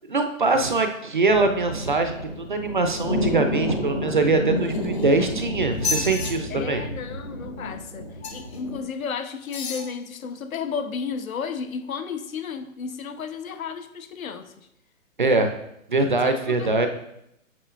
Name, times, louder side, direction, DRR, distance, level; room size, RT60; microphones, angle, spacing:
voice 1, 0.1-6.8 15.2-15.5 15.9-16.9, right 3 dB, 40° right, 6 dB, 0.5 m, -23 dB
sound 1, 1.2-8.8, left 1 dB, 30° left, 0.4 m, -30 dB
sound 2, 4.6-5.3 5.7-6.3 8.2-8.6 9.4-9.9 10.5-10.6, left 4 dB, 50° left, 1.0 m, -31 dB
voice 2, 6.5-14.5 16.2-16.9, left 6 dB, 80° left, 10 dB, 0.9 m, -33 dB
8.8 x 6.3 x 2.4 m, 0.79 s
hypercardioid pair, 170°, 41 cm